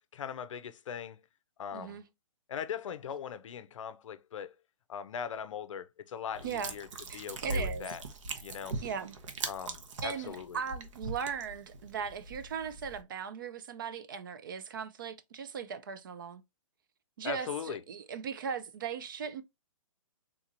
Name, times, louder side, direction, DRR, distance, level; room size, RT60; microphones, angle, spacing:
voice 1, 0.1-1.2 1.6-2.0 2.5-4.5 4.9-6.9 7.1-8.0 8.4-8.8 9.5-10.6 17.2-17.8, left 8 dB, 60° left, 0.5 m, -40 dB
voice 2, 1.7-2.0 6.4-6.7 7.1-8.0 8.8-9.2 10.0-16.4 17.2-19.4, right 6 dB, 35° right, 0.4 m, -38 dB
sound 1, 6.3-13.0, right 3 dB, 60° right, 0.8 m, -40 dB
3.7 x 2.9 x 2.4 m
hypercardioid pair, 165°, 18 cm